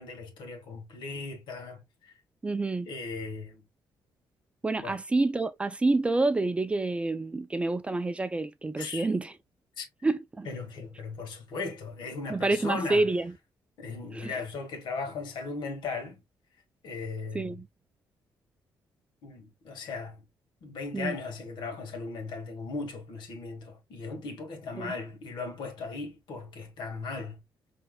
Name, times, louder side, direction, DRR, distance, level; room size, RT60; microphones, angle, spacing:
voice 1, 0.0-2.2 2.9-3.6 4.8-5.0 8.8-9.1 9.8-9.9 10.4-13.1 13.8-16.2 16.8-17.6 19.2-20.2 20.6-27.4, left 4 dB, 80° left, 1.9 m, -37 dB
voice 2, 2.4-2.9 4.6-9.3 10.0-10.5 12.3-13.3 14.1-14.3 17.3-17.7 20.9-21.2 24.8-24.9, right 2 dB, 15° right, 0.3 m, -28 dB
5.7 x 3.3 x 2.2 m
cardioid pair, 160°, 8 cm